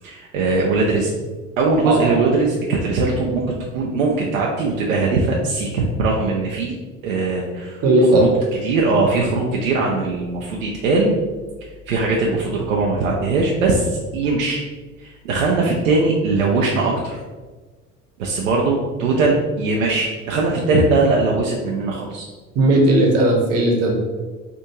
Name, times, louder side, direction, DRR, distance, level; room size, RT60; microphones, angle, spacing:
voice 1, 0.0-1.1 1.6-6.8 7.0-7.8 8.1-8.3 8.6-11.1 11.9-14.6 15.0-17.2 18.2-22.3, right 3 dB, 65° right, -2 dB, 0.6 m, -20 dB
voice 2, 1.8-2.2 7.8-8.3 22.5-23.9, right 1 dB, 35° right, -1 dB, 0.9 m, -16 dB
3.4 x 2.6 x 2.9 m, 1.3 s
figure-of-eight pair, 65°, 43 cm